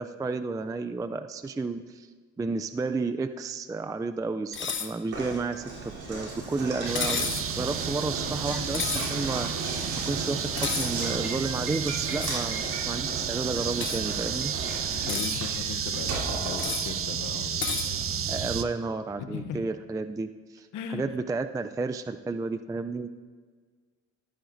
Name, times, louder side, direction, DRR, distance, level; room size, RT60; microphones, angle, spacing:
voice 1, 0.0-2.1 2.4-9.8 10.1-14.5 18.3-23.1, right 3 dB, 10° right, 10 dB, 0.3 m, -32 dB
sound 1, 4.5-4.9 6.9-7.5 8.7-9.1 10.6-10.9 12.2-12.4 13.8-14.0 14.9-15.4 16.6-16.9 17.6-17.9, left 6 dB, 40° left, 1.0 m, -31 dB
Knock, 5.1-17.3, right 2 dB, 75° right, 3.4 m, -36 dB
sound 2, 6.8-18.6, right 8 dB, 45° right, 0.7 m, -32 dB
voice 2, 14.9-18.3 19.2-19.7 20.7-21.1, left 7 dB, 80° left, 8 dB, 0.9 m, -38 dB
14.0 x 13.5 x 2.6 m, 1.6 s
cardioid pair, 90°, 30 cm